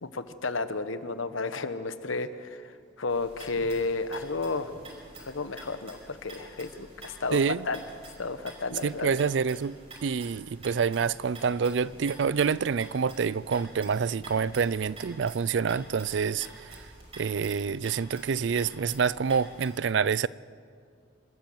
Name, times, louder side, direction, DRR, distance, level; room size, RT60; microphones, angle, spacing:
voice 1, 0.0-4.7 5.2-7.8 8.2-9.1, left 3 dB, 85° left, 1.1 m, -32 dB
sound 1, 3.1-19.7, right 2 dB, 30° right, 5.3 m, -49 dB
voice 2, 7.3-7.6 8.8-9.8 10.0-16.8 17.2-20.3, right 6 dB, 65° right, 0.4 m, -27 dB
26.5 x 13.0 x 7.7 m
head